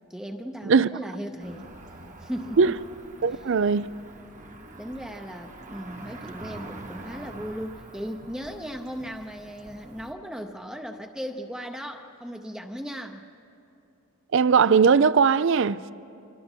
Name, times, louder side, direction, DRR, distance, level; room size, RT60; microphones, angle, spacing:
voice 1, 0.1-1.7 2.2-2.8 3.2-3.4 4.8-13.3, equal, 5° right, 0.7 m, -37 dB
Cricket / Motor vehicle (road), 1.4-10.1, right 2 dB, 35° right, 1.2 m, -45 dB
voice 2, 3.2-3.9 14.3-15.9, right 5 dB, 60° right, 0.4 m, -19 dB
29.0 x 24.5 x 4.4 m
head